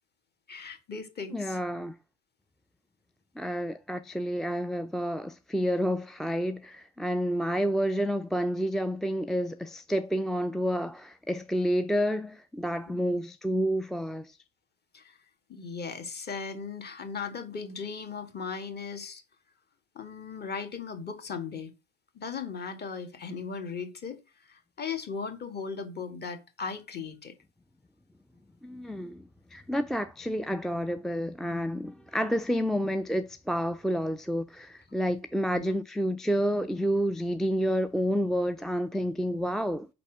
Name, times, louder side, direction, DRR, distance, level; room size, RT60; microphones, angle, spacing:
voice 1, 0.5-1.6 13.0-13.2 14.9-15.2 15.5-19.2 20.0-21.7 22.1-27.3 35.5-35.7, left 5 dB, 35° left, 1.9 m, -37 dB
voice 2, 1.3-2.0 3.4-14.4 28.6-39.9, equal, ahead, 0.4 m, -29 dB
5.4 x 4.1 x 6.0 m
hypercardioid pair, 70°, 29 cm